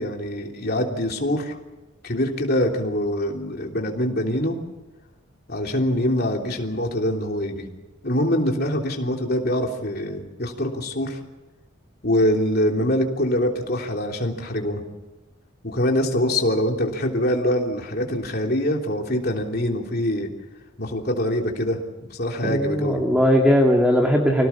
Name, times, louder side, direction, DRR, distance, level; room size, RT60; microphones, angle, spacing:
voice 1, 0.0-1.6 2.0-4.6 5.5-7.7 8.0-11.2 12.0-14.8 15.6-20.3 20.8-21.8 22.1-23.0, left 1 dB, 45° left, 1 dB, 3.3 m, -24 dB
voice 2, 22.4-24.5, equal, 5° right, 1 dB, 2.2 m, -19 dB
26.5 x 17.5 x 7.2 m, 1.1 s
head